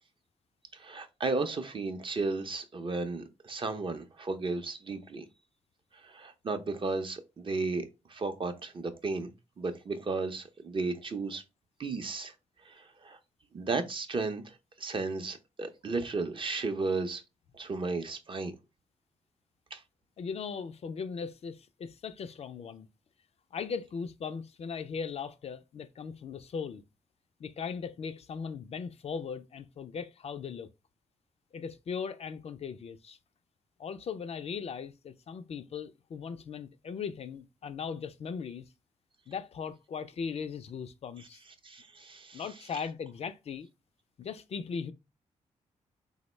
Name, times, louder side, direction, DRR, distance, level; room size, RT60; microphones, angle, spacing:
voice 1, 0.7-5.2 6.0-9.3 9.6-11.4 11.8-12.3 12.7-13.2 13.5-17.2 17.5-18.6 19.7-19.8 41.6-42.4, right 3 dB, 40° right, 0.6 m, -34 dB
voice 2, 20.2-22.9 23.5-26.8 27.4-30.7 31.5-33.2 33.8-38.7 39.3-41.4 42.3-43.7 44.2-44.9, left 6 dB, 50° left, 0.3 m, -38 dB
3.5 x 2.0 x 3.1 m
supercardioid pair, 55°, 13 cm